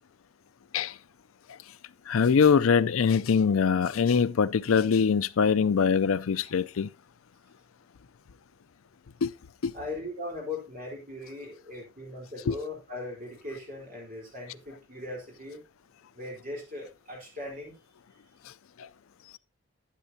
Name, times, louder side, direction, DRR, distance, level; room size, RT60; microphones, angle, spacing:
voice 1, 2.1-6.9 9.2-9.3 9.6-9.7 12.5-12.6, left 6 dB, 85° left, 0.5 m, -23 dB
voice 2, 9.7-15.6 16.1-17.7, left 2 dB, 40° right, 3.8 m, -39 dB
11.5 x 8.9 x 2.7 m
head